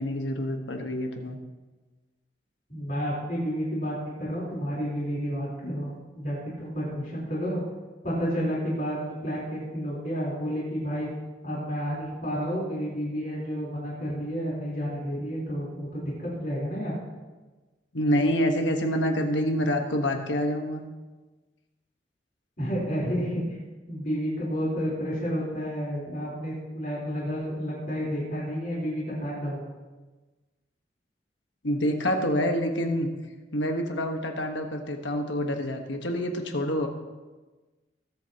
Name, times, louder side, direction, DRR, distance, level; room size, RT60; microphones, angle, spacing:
voice 1, 0.0-1.4 17.9-20.8 31.6-33.1 33.5-36.9, equal, 85° left, 4 dB, 1.4 m, -27 dB
voice 2, 2.7-7.6 8.0-11.1 11.4-17.0 22.6-23.4 23.9-29.6, equal, 45° left, -5 dB, 3.9 m, -30 dB
20.5 x 8.3 x 2.9 m, 1.2 s
head